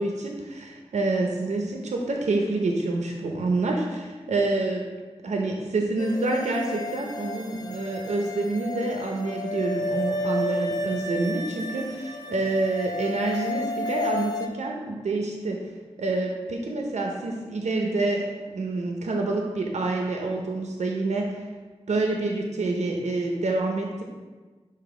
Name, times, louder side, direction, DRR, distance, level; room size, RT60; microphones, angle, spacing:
voice 1, 0.0-4.8 5.2-15.6 16.0-21.5 21.9-24.0, right 2 dB, 90° right, 1 dB, 0.7 m, -27 dB
sound 1, 6.0-14.5, left 1 dB, 35° left, 0.5 m, -32 dB
6.9 x 2.9 x 4.8 m, 1.4 s
wide cardioid pair, 80°, 11 cm